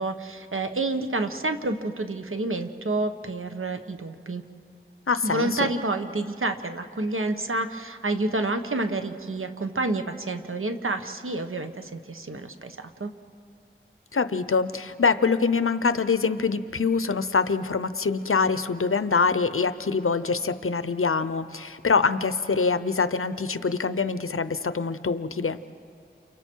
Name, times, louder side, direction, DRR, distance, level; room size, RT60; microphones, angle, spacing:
voice 1, 0.0-4.4 5.2-13.1, right 2 dB, 75° right, 7 dB, 1.2 m, -29 dB
voice 2, 5.1-5.7 14.1-25.6, left 4 dB, 85° left, 12 dB, 0.8 m, -24 dB
29.5 x 29.0 x 4.6 m, 2.4 s
wide cardioid pair, 55°, 21 cm